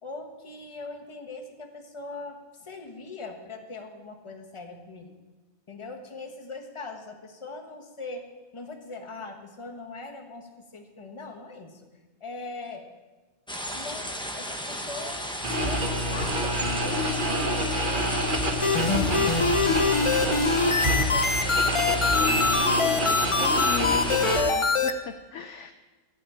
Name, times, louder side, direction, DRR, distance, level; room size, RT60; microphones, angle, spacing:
voice 1, 0.0-5.1 5.7-8.3 8.5-11.8 12.2-12.9 13.7-15.2 15.6-18.1 21.0-21.8 22.0-22.5, left 3 dB, 20° left, 4 dB, 1.1 m, -41 dB
sound 1, 13.5-24.4, equal, 5° left, 0.7 m, -34 dB
sound 2, 15.4-24.4, equal, 35° right, 1.2 m, -27 dB
sound 3, 18.6-24.9, left 4 dB, 45° left, 0.4 m, -24 dB
voice 2, 23.4-25.7, left 7 dB, 65° left, 8 dB, 0.8 m, -35 dB
14.5 x 5.3 x 8.5 m, 1.3 s
omnidirectional pair, 1.6 m